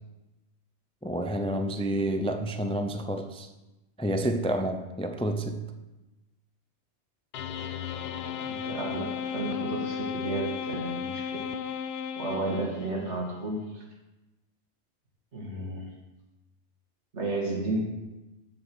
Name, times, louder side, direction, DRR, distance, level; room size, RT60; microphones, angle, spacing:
voice 1, 1.0-3.5 4.0-5.6, right 1 dB, 10° left, 6 dB, 0.4 m, -29 dB
sound 1, 7.3-13.1, left 7 dB, 65° left, 0.8 m, -34 dB
voice 2, 8.4-11.5 12.2-13.8 15.3-15.9 17.1-18.0, right 2 dB, 75° right, -1 dB, 2.4 m, -32 dB
7.8 x 7.6 x 6.3 m, 1.0 s
omnidirectional pair, 1.2 m